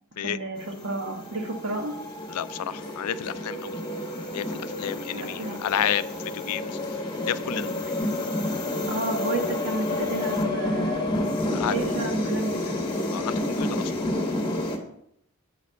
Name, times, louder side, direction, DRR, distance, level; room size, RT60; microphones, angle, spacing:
voice 1, 0.2-1.9 5.1-5.6 8.9-11.1 11.7-12.8, right 2 dB, 60° right, 1 dB, 1.6 m, -31 dB
sound 1, 0.6-14.8, left 1 dB, 20° left, 1.2 m, -29 dB
voice 2, 2.3-3.8 4.3-6.0 6.3-6.7 7.3-7.7 11.5-11.8 13.1-13.8, left 10 dB, 85° left, 14 dB, 0.4 m, -30 dB
8.2 x 4.2 x 6.4 m, 0.73 s
head